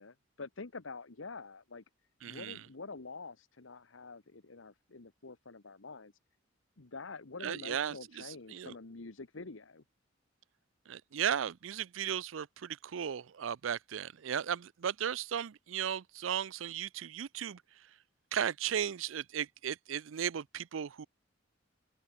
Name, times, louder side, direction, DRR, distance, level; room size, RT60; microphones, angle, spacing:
voice 1, 0.0-1.8 2.3-6.1 6.8-9.8, left 3 dB, 80° left, 1.2 m, -47 dB
voice 2, 2.2-2.6 7.4-8.7 10.9-17.6 18.3-21.1, right 8 dB, 85° right, 0.5 m, -36 dB
head